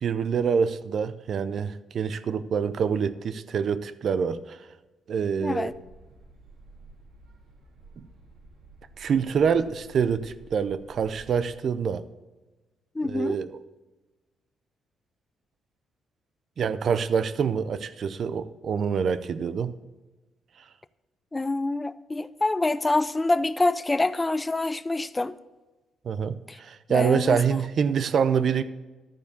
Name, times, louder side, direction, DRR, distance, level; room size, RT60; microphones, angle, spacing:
voice 1, 0.0-4.6 5.1-5.7 9.0-12.0 13.0-13.5 16.6-19.7 26.0-28.6, right 6 dB, 55° right, 14 dB, 0.6 m, -26 dB
voice 2, 5.4-5.7 12.9-13.4 21.3-25.3 26.5-26.6 26.9-27.4, left 2 dB, 20° left, 14 dB, 0.4 m, -26 dB
sound 1, 5.6-11.5, right 2 dB, 80° right, 2.2 m, -51 dB
12.0 x 4.7 x 6.9 m, 1.2 s
cardioid pair, 90°, 0 cm